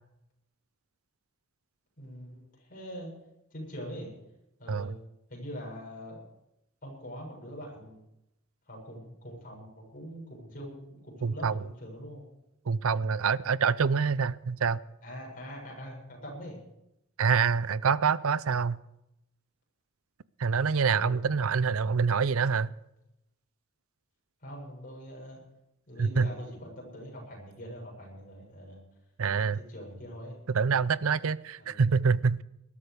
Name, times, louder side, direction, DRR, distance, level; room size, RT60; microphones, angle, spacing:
voice 1, 2.0-3.1 3.5-4.1 4.6-4.9 5.3-6.2 6.8-8.0 8.7-12.2 15.0-16.6 20.9-21.2 24.4-25.4 25.9-28.8 29.4-30.4 31.6-31.9, equal, 40° left, 7.3 m, -43 dB
voice 2, 11.2-11.6 12.7-14.8 17.2-18.8 20.4-22.7 26.0-26.3 29.2-29.6 30.5-32.4, right 5 dB, 75° right, 0.6 m, -26 dB
20.0 x 13.0 x 5.1 m
head